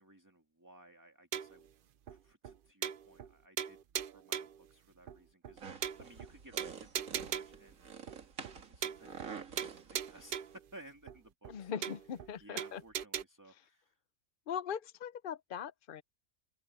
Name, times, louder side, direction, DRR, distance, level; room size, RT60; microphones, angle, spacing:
voice 1, 0.0-1.7 2.1-7.9 8.7-11.9 12.4-14.0, right 1 dB, 15° right, 2.3 m, -58 dB
sound 1, 1.3-1.7 2.1-2.2 2.4-2.5 2.8-3.3 3.6-4.6 5.1-5.2 5.4-5.5 5.8-6.3 6.6-7.7 8.1-8.2 8.4-8.6 8.8-9.3 9.6-10.6 11.1-11.2 11.4-11.5 11.8-12.3 12.6-13.2, right 9 dB, 55° right, 0.6 m, -39 dB
sound 2, 5.6-10.6, right 6 dB, 80° right, 2.0 m, -49 dB
voice 2, 11.5-12.8 14.5-16.0, left 8 dB, 55° left, 0.6 m, -40 dB
open air
omnidirectional pair, 1.4 m